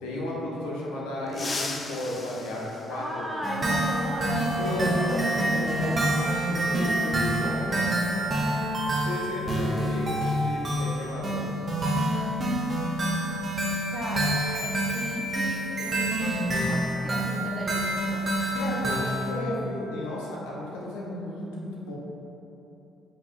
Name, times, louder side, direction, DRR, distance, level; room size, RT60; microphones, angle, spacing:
voice 1, 0.0-3.2 4.6-5.9 6.5-7.8 9.0-11.4 18.5-21.9, left 1 dB, 85° left, -5 dB, 0.6 m, -33 dB
sound 1, 1.3-3.7 5.3-5.4 6.7-6.8 8.4-8.5 8.9-9.1 9.6-11.8 12.0-12.3 12.7-13.2, left 3 dB, 40° left, 0.4 m, -39 dB
voice 2, 2.9-6.3 7.4-8.4 13.9-18.3, equal, ahead, -4 dB, 0.8 m, -36 dB
sound 2, 3.4-19.3, right 1 dB, 40° right, 0.8 m, -27 dB
4.6 x 2.8 x 2.5 m, 3.0 s
hypercardioid pair, 55°, 0 cm